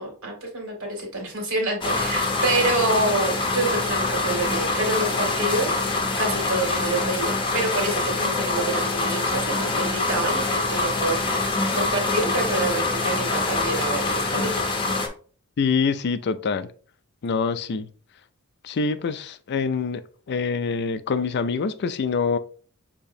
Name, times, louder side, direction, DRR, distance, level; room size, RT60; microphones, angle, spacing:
voice 1, 0.0-14.6, right 2 dB, 65° right, 2.1 m, -27 dB
sound 1, 1.8-15.1, left 3 dB, 25° left, 0.8 m, -25 dB
voice 2, 15.6-16.7 17.2-17.9 18.6-20.0 20.3-22.4, left 5 dB, 50° left, 0.4 m, -25 dB
6.6 x 2.9 x 2.7 m
head